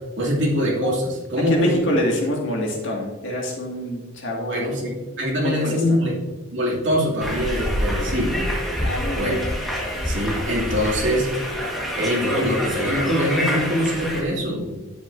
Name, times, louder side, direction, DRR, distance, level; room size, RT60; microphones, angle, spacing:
voice 1, 0.2-1.8 4.5-4.9 5.2-6.1 6.5-8.4 9.1-9.3 10.0-11.3 12.0-14.8, equal, 60° right, -5 dB, 2.7 m, -23 dB
voice 2, 1.5-4.6 5.4-6.0 8.0-8.2 8.8-9.4, left 1 dB, 65° left, -1 dB, 2.2 m, -26 dB
sound 1, 7.2-14.2, equal, ahead, 1.5 m, -27 dB
10.5 x 7.9 x 2.7 m, 1.3 s
head